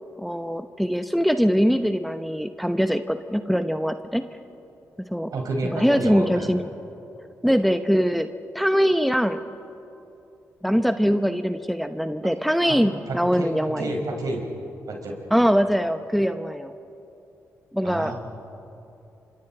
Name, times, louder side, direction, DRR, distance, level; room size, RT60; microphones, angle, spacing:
voice 1, 0.2-4.2 5.1-5.3 5.7-6.6 7.4-8.3 8.5-9.4 10.6-13.9 15.3-16.7 17.7-18.1, equal, ahead, 9 dB, 0.9 m, -22 dB
voice 2, 5.3-6.5 12.6-12.8 13.1-14.5 14.9-15.2 17.8-18.1, right 2 dB, 65° right, 1 dB, 5.1 m, -30 dB
28.0 x 25.5 x 4.4 m, 2.9 s
supercardioid pair, 45°, 7 cm